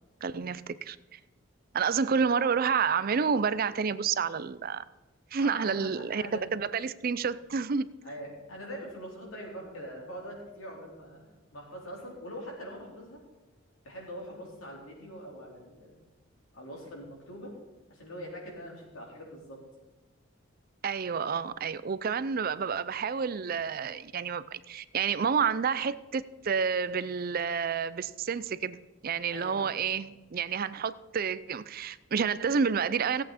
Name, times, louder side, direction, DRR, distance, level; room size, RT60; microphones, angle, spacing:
voice 1, 0.2-1.2 1.7-4.8 5.3-6.2 6.5-7.9 20.8-28.8 29.0-33.2, right 6 dB, 45° right, 0.4 m, -29 dB
voice 2, 5.4-5.9 6.1-6.5 8.0-13.2 13.8-16.0 16.5-17.5 17.9-19.6 29.3-29.9, equal, 80° left, 4.3 m, -43 dB
17.0 x 8.2 x 4.3 m
head